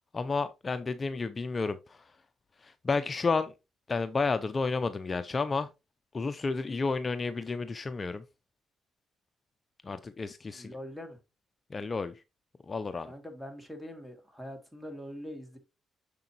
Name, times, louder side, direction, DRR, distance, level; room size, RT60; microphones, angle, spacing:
voice 1, 0.1-2.1 2.6-3.5 3.9-5.7 6.1-8.2 9.8-10.7 11.7-12.1 12.7-13.1, left 4 dB, 30° left, 0.5 m, -31 dB
voice 2, 10.5-11.2 13.0-15.6, equal, 5° right, 2.4 m, -43 dB
6.8 x 6.7 x 2.9 m
cardioid pair, 90°, 0 cm